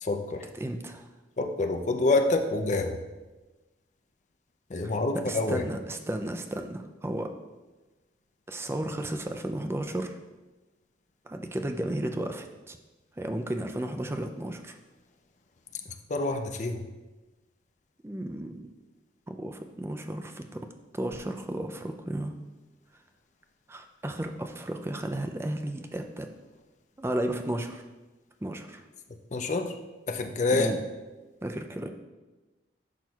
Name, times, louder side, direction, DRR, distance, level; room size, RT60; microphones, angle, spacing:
voice 1, 0.0-0.5 1.4-3.0 4.7-5.7 16.1-16.8 29.3-29.8 30.1-30.7, left 2 dB, 40° left, 5 dB, 0.5 m, -27 dB
voice 2, 0.6-1.1 5.3-7.3 8.5-10.1 11.3-12.8 13.2-14.8 18.0-18.7 19.3-20.6 20.9-22.3 23.7-26.3 27.0-27.8 28.4-28.8 30.5-30.8 31.4-31.9, right 1 dB, 15° right, 5 dB, 0.4 m, -33 dB
10.5 x 6.0 x 2.4 m, 1.2 s
head